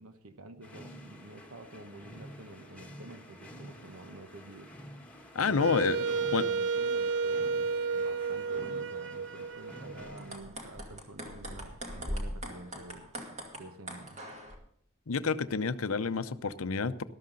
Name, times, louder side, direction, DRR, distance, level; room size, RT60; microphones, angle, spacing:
voice 1, 0.0-4.7 5.5-13.1 13.5-14.2, right 2 dB, 75° right, 8 dB, 1.1 m, -48 dB
sound 1, 0.6-10.4, equal, 5° left, 1.6 m, -50 dB
voice 2, 5.3-6.0 6.3-6.4 15.1-17.0, left 5 dB, 70° left, 12 dB, 0.7 m, -29 dB
Wind instrument woodwind instrument, 5.6-10.5, right 5 dB, 60° right, 0.5 m, -32 dB
sound 2, 10.2-14.6, equal, 30° right, 2.3 m, -40 dB
13.0 x 12.5 x 3.9 m, 0.67 s
head